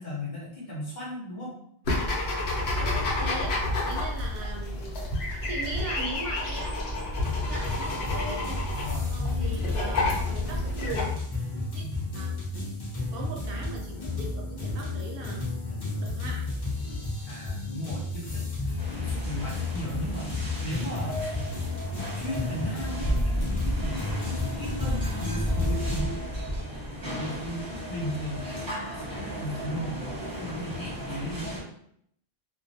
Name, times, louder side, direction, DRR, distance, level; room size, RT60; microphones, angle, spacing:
voice 1, 0.0-1.6 8.8-9.1 11.8-12.0 15.7-16.2 17.3-21.2 22.1-26.3 27.1-31.7, left 1 dB, 50° left, -5 dB, 0.8 m, -36 dB
sound 1, 1.8-11.0, left 2 dB, 85° left, 0.9 m, -30 dB
voice 2, 2.7-3.6 3.8-5.0 5.4-8.6 9.1-11.1 11.7-11.8 12.1-12.4 13.1-15.5 16.0-16.4, right 2 dB, 70° right, -1 dB, 0.8 m, -39 dB
sound 2, 7.2-26.0, left 3 dB, 35° left, 0.4 m, -32 dB
sound 3, 18.8-31.6, equal, 25° right, 0.7 m, -33 dB
2.4 x 2.1 x 2.6 m, 0.70 s
omnidirectional pair, 1.0 m